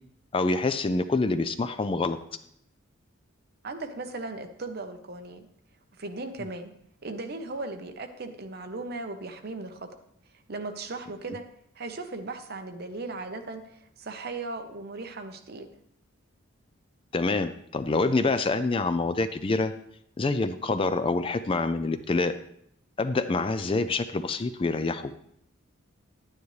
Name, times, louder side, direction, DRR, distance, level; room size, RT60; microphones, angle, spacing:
voice 1, 0.3-2.2 17.1-19.7 20.2-22.3 23.0-25.1, left 3 dB, 25° left, 11 dB, 0.4 m, -26 dB
voice 2, 3.6-5.5 6.0-6.7 7.0-9.9 10.5-11.4 11.7-15.7, right 3 dB, 50° right, 6 dB, 0.9 m, -37 dB
10.5 x 9.5 x 3.2 m, 0.70 s
head